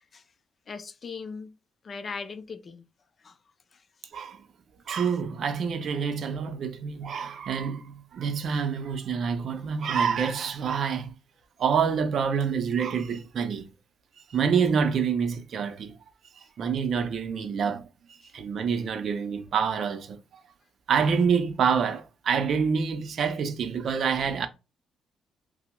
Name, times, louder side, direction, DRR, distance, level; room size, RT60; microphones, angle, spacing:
voice 1, 0.7-1.5 1.8-2.8 3.2-3.4 3.7-3.8, left 5 dB, 40° left, 0.4 m, -38 dB
voice 2, 4.1-4.5 4.9-11.1 11.6-13.7 14.3-16.0 16.6-17.9 18.3-20.2 20.9-24.5, right 6 dB, 60° right, 0.5 m, -27 dB
5.6 x 2.0 x 2.2 m
cardioid pair, 90°, 0 cm